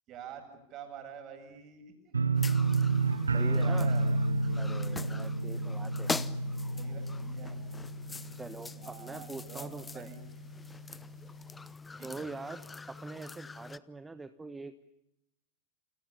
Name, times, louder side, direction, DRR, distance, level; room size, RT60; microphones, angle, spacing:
voice 1, 0.1-2.4 3.4-4.0 6.8-7.6 8.7-10.2 12.0-12.3, right 7 dB, 35° right, 6 dB, 8.0 m, -47 dB
sound 1, 2.1-9.0 9.3-9.8 10.2-10.3, right 3 dB, 75° right, 1.2 m, -30 dB
sound 2, 2.3-13.8, left 4 dB, 10° left, 1.0 m, -43 dB
voice 2, 3.3-3.9 4.6-6.1 8.3-10.1 12.0-12.6 12.9-14.8, right 3 dB, 10° right, 11 dB, 1.2 m, -43 dB
29.5 x 28.0 x 7.0 m, 0.84 s
figure-of-eight pair, 90°, 0 cm